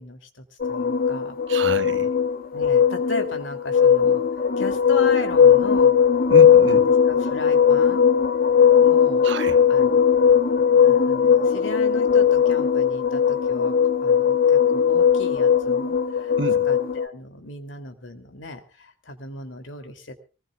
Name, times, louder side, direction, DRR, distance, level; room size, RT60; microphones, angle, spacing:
voice 1, 0.0-1.7 2.5-5.9 6.6-8.1 8.8-9.3 9.7-13.7 14.0-16.4 16.7-20.2, left 2 dB, 70° left, 2.7 m, -36 dB
sound 1, 0.6-17.1, left 7 dB, 45° left, 0.9 m, -18 dB
voice 2, 1.5-2.1 6.3-6.8 9.2-9.6 16.4-16.7, right 3 dB, 65° right, 1.0 m, -29 dB
23.5 x 19.5 x 2.3 m
head